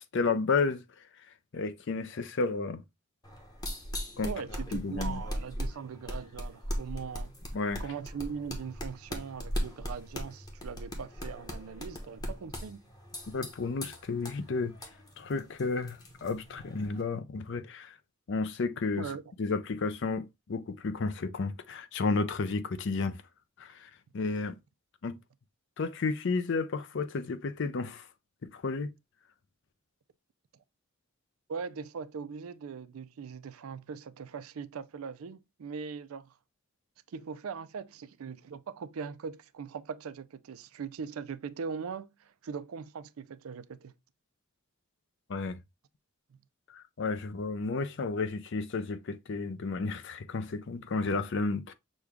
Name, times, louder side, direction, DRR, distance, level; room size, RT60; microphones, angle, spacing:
voice 1, 0.1-0.8 1.5-2.8 4.2-4.3 4.7-5.2 7.5-7.8 13.3-14.7 15.2-17.9 18.3-19.1 19.4-23.2 23.6-24.6 25.0-25.2 25.8-28.1 28.5-28.9 45.3-45.6 46.7-51.7, left 4 dB, 60° left, 0.5 m, -32 dB
sound 1, 3.2-17.0, equal, 20° left, 1.0 m, -39 dB
voice 2, 4.2-7.3 7.8-12.9 19.0-19.2 31.5-36.3 37.1-43.9, right 6 dB, 85° right, 0.4 m, -40 dB
6.3 x 2.3 x 3.4 m
head